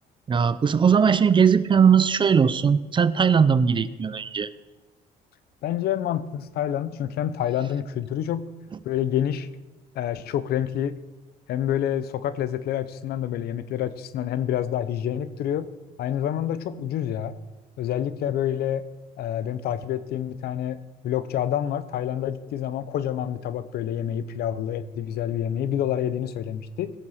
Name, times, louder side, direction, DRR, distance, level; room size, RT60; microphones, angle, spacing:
voice 1, 0.3-4.5, right 6 dB, 30° right, 15 dB, 0.5 m, -19 dB
voice 2, 5.6-8.5 8.8-9.5 9.9-10.9 11.5-15.7 16.0-17.4 17.8-18.8 19.2-20.8 21.0-26.9, left 10 dB, 70° left, 14 dB, 0.8 m, -27 dB
17.0 x 6.9 x 5.7 m, 1.1 s
cardioid pair, 110°, 17 cm